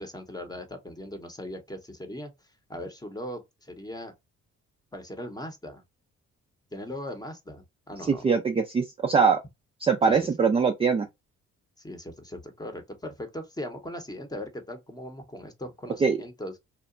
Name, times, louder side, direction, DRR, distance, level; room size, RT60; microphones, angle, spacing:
voice 1, 0.0-2.3 2.7-4.1 4.9-5.8 6.7-8.2 10.0-10.2 11.8-16.5, left 1 dB, 15° left, 0.8 m, -39 dB
voice 2, 8.1-9.4 9.8-11.1 16.0-16.2, right 5 dB, 20° right, 0.3 m, -22 dB
2.8 x 2.1 x 2.4 m
cardioid pair, 90°, 30 cm